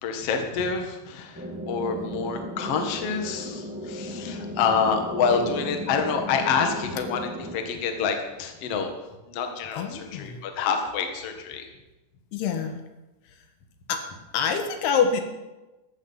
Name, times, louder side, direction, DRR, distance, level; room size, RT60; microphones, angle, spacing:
voice 1, 0.0-8.9 9.3-11.7, left 6 dB, 50° left, 4 dB, 1.9 m, -27 dB
sound 1, 1.3-7.6, equal, 15° right, 0.4 m, -35 dB
voice 2, 9.7-10.4 12.3-12.8 13.9-14.0 14.3-15.2, left 6 dB, 75° left, 6 dB, 3.3 m, -26 dB
14.5 x 12.5 x 5.7 m, 1.1 s
omnidirectional pair, 4.7 m